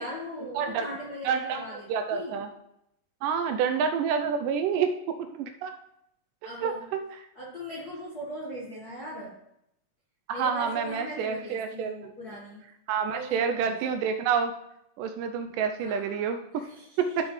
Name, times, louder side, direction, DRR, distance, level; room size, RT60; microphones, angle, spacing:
voice 1, 0.0-2.4 6.4-6.8 7.3-9.4 10.3-12.6 13.1-14.0 15.8-17.3, equal, 50° left, -6 dB, 1.2 m, -40 dB
voice 2, 0.6-0.9 1.3-1.6 1.9-2.5 3.2-5.8 6.6-7.0 10.3-12.1 12.9-14.5 15.0-16.6 17.0-17.3, right 6 dB, 80° right, 7 dB, 2.0 m, -28 dB
12.0 x 6.2 x 3.1 m, 0.78 s
omnidirectional pair, 4.1 m